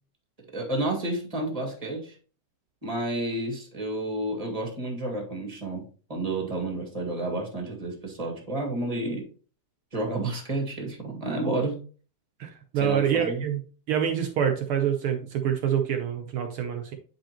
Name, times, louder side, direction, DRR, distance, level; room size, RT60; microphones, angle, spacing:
voice 1, 0.5-2.2 2.8-5.8 6.1-9.2 9.9-11.8 12.7-13.4, right 2 dB, 15° right, 0 dB, 1.3 m, -30 dB
voice 2, 12.4-13.6 13.9-16.9, right 8 dB, 75° right, 4 dB, 1.2 m, -26 dB
9.3 x 5.3 x 3.0 m, 0.40 s
omnidirectional pair, 3.4 m